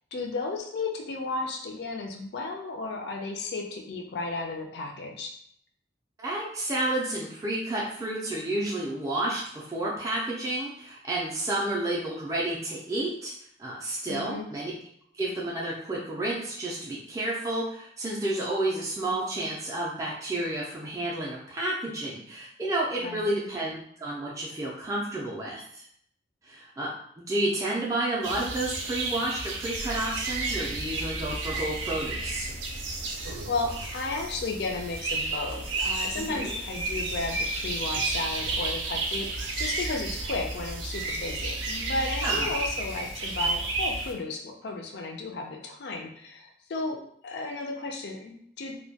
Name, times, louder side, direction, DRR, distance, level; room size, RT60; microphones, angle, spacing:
voice 1, 0.1-5.4 14.1-14.5 23.0-23.3 33.5-48.8, left 3 dB, 60° left, 3 dB, 0.4 m, -34 dB
voice 2, 6.2-13.3 13.6-14.7 15.2-25.9 26.4-26.9 27.2-32.5 36.1-36.5 42.2-42.6, right 1 dB, 15° right, -5 dB, 0.3 m, -31 dB
sound 1, 28.2-44.1, right 3 dB, 80° right, 0.4 m, -32 dB
sound 2, 29.8-43.3, equal, 80° left, 0.8 m, -42 dB
2.2 x 2.1 x 2.7 m, 0.67 s
head